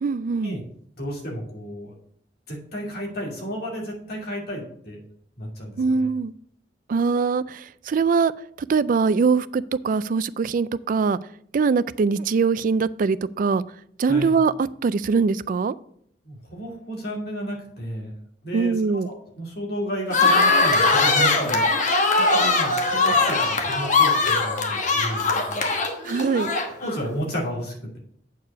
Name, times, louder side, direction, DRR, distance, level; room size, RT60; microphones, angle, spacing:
voice 1, 0.0-0.6 5.8-6.3 6.9-8.3 8.7-11.2 11.5-13.6 14.0-15.8 18.5-19.1 26.0-26.5, right 5 dB, 50° right, 17 dB, 0.3 m, -22 dB
voice 2, 1.0-1.9 2.5-5.0 5.4-6.1 14.1-14.3 16.2-18.1 18.4-18.7 19.0-21.6 22.2-25.7 26.8-28.0, equal, 60° left, -2 dB, 2.6 m, -32 dB
sound 1, 20.1-27.0, left 3 dB, 45° left, 1.2 m, -21 dB
8.2 x 4.8 x 6.6 m, 0.67 s
head